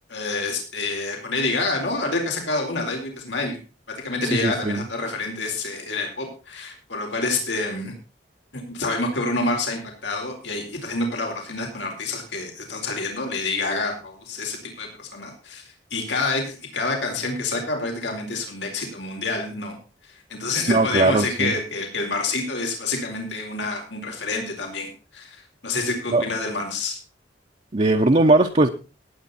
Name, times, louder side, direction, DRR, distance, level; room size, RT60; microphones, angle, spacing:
voice 1, 0.1-3.6 3.9-7.9 8.5-15.6 15.9-19.8 20.1-27.0, left 3 dB, 85° left, 4.4 m, -28 dB
voice 2, 4.2-4.8 20.7-21.5 26.1-26.2 27.7-28.7, right 2 dB, 40° right, 0.8 m, -19 dB
18.0 x 8.8 x 4.2 m
head